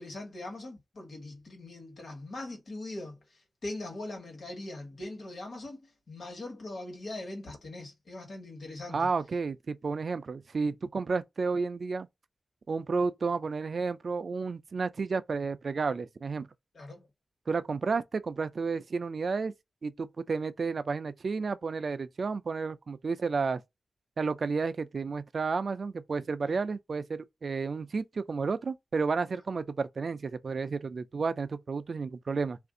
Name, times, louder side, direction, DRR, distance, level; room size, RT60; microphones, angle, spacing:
voice 1, 0.0-3.2 3.6-9.1 16.7-17.1 26.4-26.5, left 2 dB, 70° left, 1.5 m, -41 dB
voice 2, 8.9-12.1 12.7-16.5 17.5-19.5 19.8-23.6 24.2-32.6, right 4 dB, 60° right, 0.4 m, -31 dB
2.5 x 2.5 x 3.6 m
wide cardioid pair, 75°, 0 cm